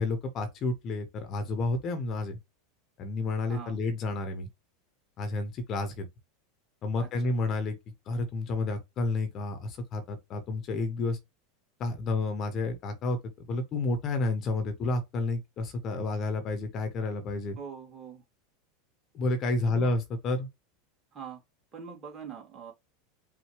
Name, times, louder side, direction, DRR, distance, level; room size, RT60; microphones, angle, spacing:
voice 1, 0.0-2.4 3.0-4.5 5.2-6.0 6.8-7.8 8.1-11.2 11.8-13.2 13.5-17.6 19.1-20.5, left 2 dB, 40° left, 1.2 m, -30 dB
voice 2, 3.5-3.8 7.0-7.3 17.6-18.2 19.6-19.9 21.1-21.4 21.7-22.7, right 6 dB, 30° right, 2.6 m, -43 dB
5.5 x 2.7 x 3.3 m
figure-of-eight pair, 85°, 0 cm